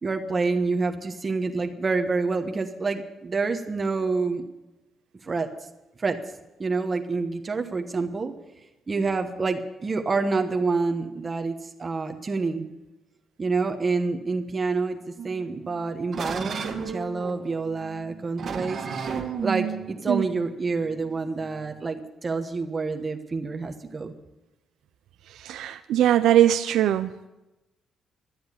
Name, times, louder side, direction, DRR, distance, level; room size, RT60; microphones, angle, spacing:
voice 1, 0.0-4.4 5.2-5.5 6.0-6.2 6.6-8.3 8.9-12.7 13.4-15.0 15.2-18.8 19.4-24.1, right 4 dB, 35° right, 4 dB, 1.1 m, -27 dB
sound 1, 15.2-21.8, right 6 dB, 55° right, 1.9 m, -34 dB
voice 2, 25.4-27.1, right 11 dB, 85° right, 9 dB, 0.5 m, -21 dB
12.5 x 7.9 x 9.8 m, 1.0 s
cardioid pair, 85°, 0 cm